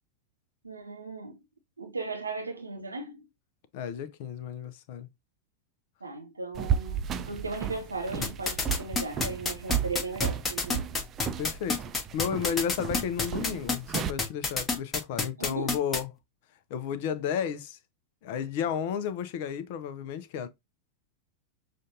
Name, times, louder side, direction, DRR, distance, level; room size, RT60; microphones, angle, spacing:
voice 1, 0.6-1.4 1.8-3.3 6.0-10.8 15.4-15.8, right 3 dB, 80° right, 0.7 m, -37 dB
voice 2, 3.7-5.1 11.4-11.8 12.1-16.1 16.7-17.8 18.2-20.5, left 8 dB, 50° left, 0.6 m, -32 dB
sound 1, 6.5-14.1, right 8 dB, 30° right, 0.5 m, -33 dB
sound 2, 8.2-16.0, left 3 dB, 20° left, 1.0 m, -28 dB
6.4 x 2.5 x 2.7 m
figure-of-eight pair, 90°, 0 cm